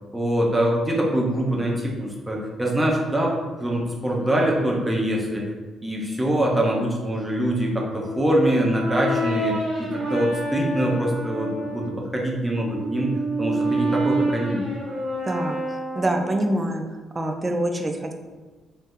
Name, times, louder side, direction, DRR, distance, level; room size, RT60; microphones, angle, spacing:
voice 1, 0.1-5.5 5.8-14.7, right 1 dB, 10° right, -2 dB, 0.8 m, -24 dB
Brass instrument, 8.0-11.9 12.5-16.6, right 1 dB, 60° right, 0.8 m, -28 dB
voice 2, 15.3-16.8 17.1-18.1, right 1 dB, 30° right, 5 dB, 0.4 m, -25 dB
2.7 x 2.0 x 3.7 m, 1.3 s
supercardioid pair, 65°, 0 cm